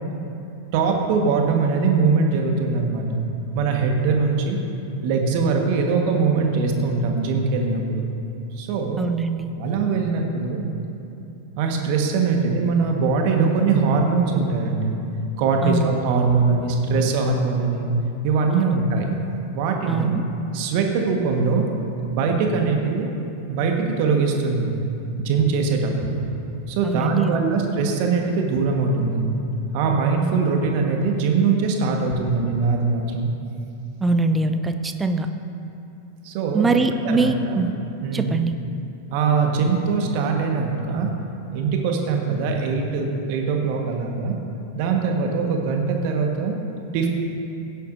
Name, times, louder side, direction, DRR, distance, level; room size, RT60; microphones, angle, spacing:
voice 1, 0.7-3.2 3.5-4.6 5.0-8.1 8.5-9.0 9.6-10.6 11.6-15.0 15.4-17.9 18.2-19.2 19.5-20.1 20.5-21.7 22.1-23.1 23.5-24.7 25.2-26.2 26.7-29.3 29.7-33.3 36.2-37.7 38.0-38.4 39.1-41.1 41.5-44.3 44.7-46.5 46.9-47.1, right 4 dB, 45° right, 2 dB, 1.5 m, -22 dB
voice 2, 9.0-9.5 15.6-15.9 18.5-18.8 19.9-20.2 26.8-27.5 34.0-35.3 36.5-37.7 38.1-38.6, right 3 dB, 15° right, 7 dB, 0.6 m, -23 dB
17.0 x 10.0 x 2.7 m, 2.9 s
figure-of-eight pair, 90°, 0 cm